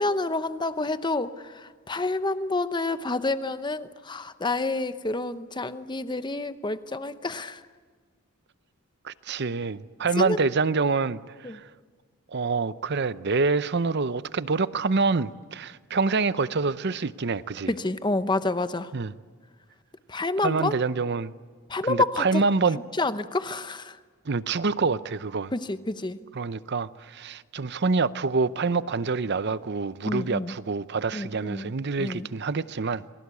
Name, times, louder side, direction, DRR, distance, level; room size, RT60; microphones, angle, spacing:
voice 1, 0.0-7.6 10.2-10.4 11.4-11.6 17.7-18.9 20.1-20.7 21.7-22.4 23.0-24.0 25.5-26.2 30.0-30.5 31.1-31.7 32.0-32.3, left 2 dB, 20° left, 0.8 m, -28 dB
voice 2, 9.0-11.6 12.3-17.7 18.9-19.1 20.4-21.3 21.8-22.8 24.3-25.5 26.3-33.0, right 4 dB, 50° right, 0.7 m, -26 dB
28.0 x 21.5 x 8.4 m
head